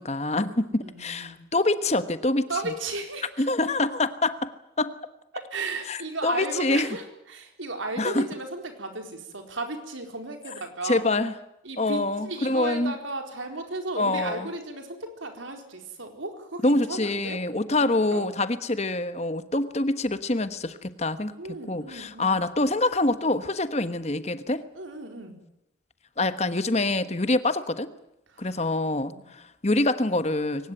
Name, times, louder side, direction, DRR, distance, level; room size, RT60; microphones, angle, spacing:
voice 1, 0.0-2.5 3.4-4.5 4.8-4.9 5.9-6.9 8.0-8.3 10.8-11.3 11.8-12.9 14.0-14.5 16.6-21.3 21.7-24.6 26.2-27.9 28.4-30.7, left 2 dB, 35° left, 12 dB, 1.2 m, -25 dB
voice 2, 0.8-1.4 2.5-3.5 5.3-11.1 11.6-17.4 17.8-18.3 21.4-22.4 24.7-25.4 28.3-28.7 29.1-29.3, right 2 dB, 90° right, 5 dB, 4.4 m, -35 dB
23.0 x 19.0 x 9.1 m, 0.87 s
head